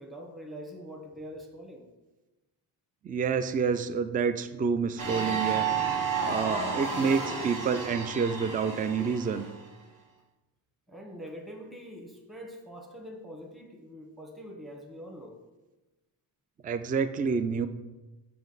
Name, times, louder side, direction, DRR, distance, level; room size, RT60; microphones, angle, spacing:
voice 1, 0.0-1.9 10.9-15.4, equal, ahead, 1 dB, 1.1 m, -44 dB
voice 2, 3.0-5.7 6.2-9.5 16.6-17.7, right 5 dB, 20° right, 11 dB, 0.3 m, -28 dB
sound 1, 5.0-9.6, right 5 dB, 40° right, 1.4 m, -31 dB
5.9 x 5.1 x 4.0 m, 1.1 s
cardioid pair, 70°, 48 cm